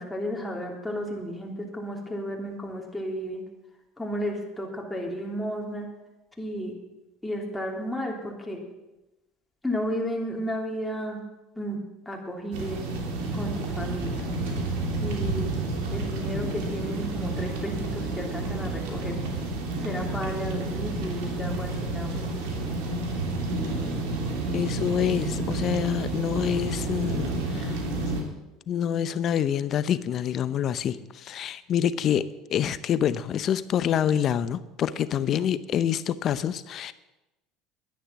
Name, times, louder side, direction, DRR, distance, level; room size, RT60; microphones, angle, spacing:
voice 1, 0.0-3.4 4.0-5.9 6.4-6.7 7.2-8.6 9.6-11.2 11.5-11.8 12.0-12.8 13.3-14.2 15.0-15.5 15.9-19.1 19.8-22.3, equal, 5° left, -1 dB, 3.3 m, -33 dB
sound 1, 12.5-28.2, right 2 dB, 80° right, 3.0 m, -30 dB
voice 2, 24.5-27.8 28.7-36.9, left 9 dB, 45° left, 15 dB, 0.7 m, -27 dB
11.5 x 10.0 x 7.4 m, 1.0 s
supercardioid pair, 110°, 0 cm